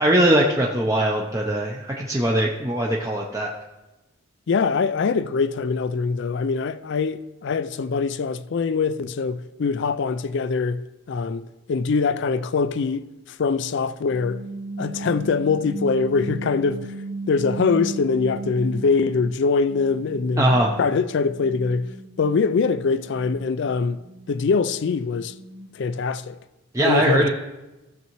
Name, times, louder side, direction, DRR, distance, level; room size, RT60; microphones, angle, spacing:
voice 1, 0.0-3.5 20.4-20.7 26.7-27.3, right 1 dB, 15° right, 0.6 m, -21 dB
voice 2, 4.5-10.8 11.1-11.4 11.7-14.4 14.8-16.9 17.3-20.5 20.8-21.9 22.2-24.0 24.3-25.3 25.7-26.4 26.8-27.3, left 4 dB, 55° left, 0.4 m, -23 dB
sound 1, 14.1-19.3 19.7-25.9, right 2 dB, 35° right, 2.0 m, -36 dB
15.5 x 6.8 x 3.1 m
head